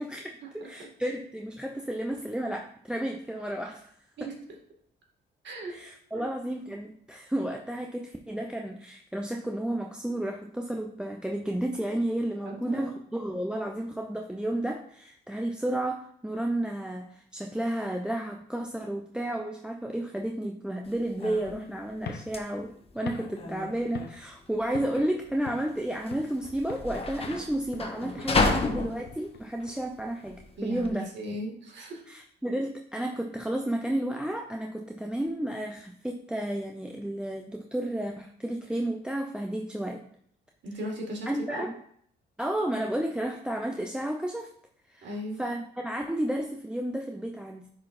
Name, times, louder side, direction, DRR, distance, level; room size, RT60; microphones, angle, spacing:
voice 1, 0.0-3.9 4.2-4.3 5.7-31.1 32.1-40.0 41.3-41.7 42.4-44.5 44.9-45.1 45.4-47.7, right 1 dB, 5° right, 2 dB, 0.5 m, -32 dB
voice 2, 12.4-12.9 23.0-23.1 30.6-32.0 40.6-41.6 45.0-45.4, right 1 dB, 65° right, 0 dB, 1.9 m, -37 dB
sound 1, 20.8-30.9, left 3 dB, 30° left, 0.9 m, -32 dB
sound 2, 22.0-24.4 24.7-25.1 25.5-26.4 26.7-27.0 27.2-30.4, left 6 dB, 55° left, 0.7 m, -44 dB
10.0 x 4.1 x 2.5 m, 0.65 s
cardioid pair, 90°, 20 cm